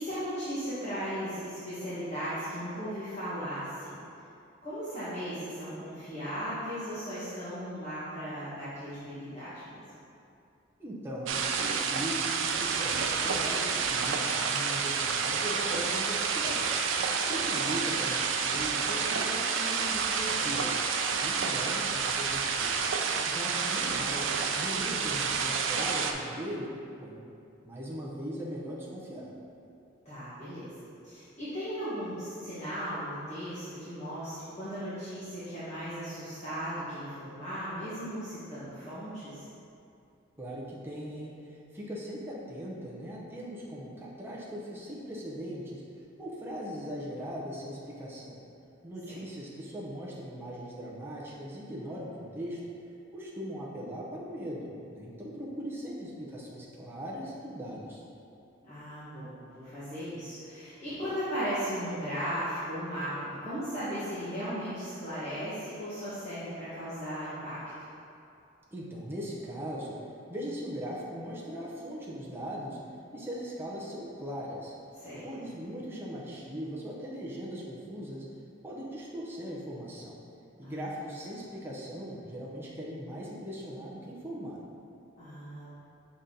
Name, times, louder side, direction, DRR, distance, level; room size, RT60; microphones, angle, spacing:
voice 1, 0.0-4.0 4.6-9.8 23.3-23.5 30.0-30.7 31.0-39.4 49.1-49.2 58.6-67.6 75.0-75.2 80.6-80.8 85.2-85.7, equal, 35° left, -14 dB, 1.5 m, -36 dB
voice 2, 10.8-20.8 21.2-22.8 23.2-26.7 27.0-27.2 27.6-29.3 40.4-45.8 46.2-48.4 48.8-52.6 53.1-58.0 68.7-70.0 70.3-72.8 73.1-74.7 75.2-78.3 78.6-80.2 80.6-84.6, equal, 10° right, -6 dB, 0.7 m, -39 dB
sound 1, 11.3-26.1, right 5 dB, 70° right, 0.5 m, -29 dB
6.7 x 4.2 x 3.8 m, 2.6 s
head